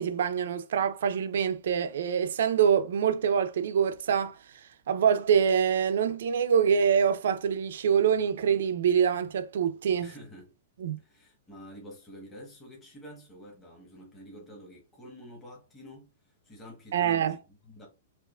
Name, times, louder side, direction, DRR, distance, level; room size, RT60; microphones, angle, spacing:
voice 1, 0.0-4.4 4.9-10.1 10.8-11.0 16.9-17.4, right 7 dB, 70° right, 0.6 m, -25 dB
voice 2, 10.0-10.5 11.0-17.9, equal, 10° left, 1.3 m, -48 dB
4.7 x 2.6 x 2.4 m
hypercardioid pair, 170°, 0 cm